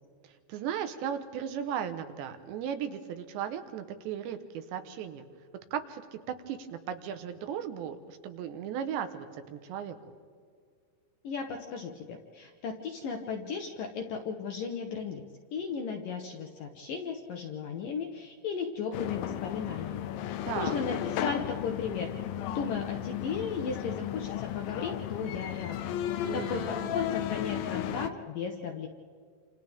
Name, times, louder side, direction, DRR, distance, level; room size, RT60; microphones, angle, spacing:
voice 1, 0.5-5.2 5.7-6.2 6.5-10.0 20.4-20.8 26.2-26.9, right 9 dB, 75° right, 8 dB, 3.2 m, -36 dB
voice 2, 11.2-15.2 15.5-22.1 22.4-28.9, left 5 dB, 70° left, 2 dB, 2.2 m, -36 dB
sound 1, 18.9-28.1, left 11 dB, 85° left, 2.0 m, -34 dB
28.5 x 27.0 x 3.6 m, 2.1 s
omnidirectional pair, 5.2 m